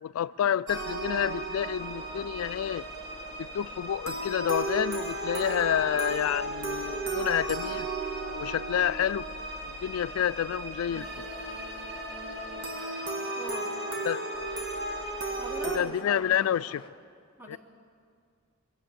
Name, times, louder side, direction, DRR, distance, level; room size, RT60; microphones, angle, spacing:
voice 1, 0.0-2.8 3.4-7.9 8.3-9.3 9.6-11.3 14.0-14.2 15.7-16.8 17.5-17.6, left 10 dB, 80° left, 18 dB, 0.3 m, -29 dB
sound 1, 0.7-15.8, right 2 dB, 50° right, 1.7 m, -35 dB
sound 2, 1.7-16.9, left 2 dB, 25° left, 1.4 m, -50 dB
voice 2, 13.3-13.8 15.4-16.5 17.4-17.6, right 1 dB, 10° right, 2 dB, 1.0 m, -41 dB
21.5 x 7.6 x 8.7 m, 2.2 s
head